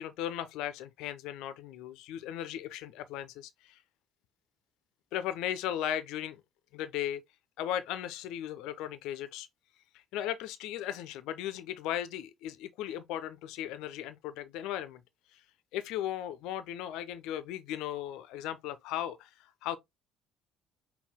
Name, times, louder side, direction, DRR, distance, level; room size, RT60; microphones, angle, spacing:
voice 1, 0.0-3.8 5.1-6.4 6.7-7.2 7.6-9.5 10.1-15.0 15.3-15.4 15.7-19.3 19.6-19.8, left 11 dB, 60° left, 0.5 m, -36 dB
5.5 x 2.3 x 3.5 m
figure-of-eight pair, 50°, 0 cm